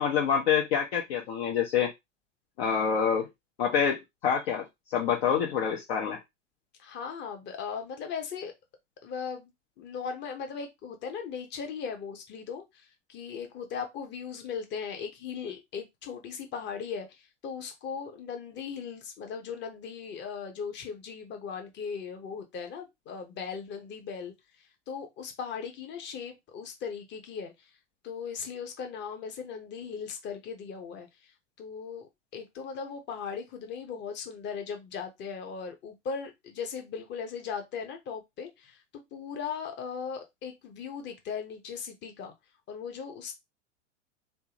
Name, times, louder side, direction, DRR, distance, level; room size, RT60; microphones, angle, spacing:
voice 1, 0.0-1.9 2.6-3.3 3.6-4.6 4.9-6.2, left 7 dB, 50° left, 0.9 m, -26 dB
voice 2, 6.8-8.5 9.0-24.3 24.6-27.7 28.0-38.8 39.1-42.3 42.7-43.3, left 6 dB, 30° left, 1.0 m, -38 dB
3.5 x 2.7 x 2.9 m
figure-of-eight pair, 95°, 38 cm